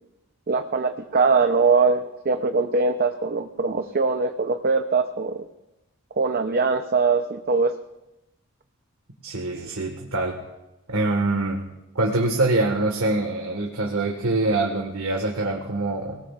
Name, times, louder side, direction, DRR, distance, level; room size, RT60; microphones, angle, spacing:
voice 1, 0.5-5.5 6.2-7.8, right 4 dB, 45° right, 6 dB, 0.7 m, -22 dB
voice 2, 9.2-10.4 10.9-11.6 11.9-16.2, right 2 dB, 85° right, 1 dB, 1.7 m, -24 dB
28.0 x 18.5 x 2.5 m, 0.95 s
head